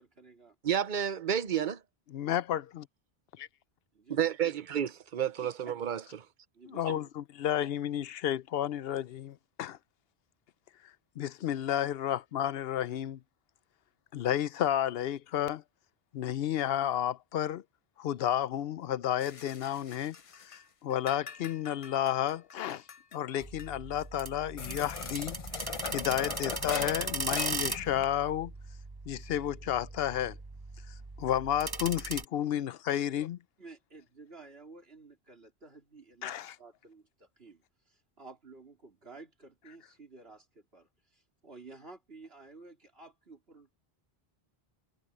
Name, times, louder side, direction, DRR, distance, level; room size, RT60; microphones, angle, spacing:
voice 1, 0.0-0.6 4.0-4.5 5.4-5.5 6.5-7.1 32.4-32.5 33.6-43.7, right 3 dB, 75° right, 4.1 m, -53 dB
voice 2, 0.6-1.8 4.1-6.3 6.9-7.0, right 9 dB, 55° right, 0.9 m, -31 dB
voice 3, 2.1-2.9 6.7-9.8 11.2-13.2 14.1-15.6 16.1-17.6 18.0-20.2 20.4-22.8 23.1-25.4 25.9-28.5 29.1-30.4 31.2-33.4 36.2-36.5, left 11 dB, 75° left, 0.8 m, -31 dB
sound 1, 19.2-20.6 20.9-23.2 23.6-23.7 24.0-24.1 24.6-28.1, left 6 dB, 40° left, 0.6 m, -40 dB
sound 2, 23.4-32.2, right 3 dB, 25° right, 0.8 m, -39 dB
omnidirectional pair, 1.0 m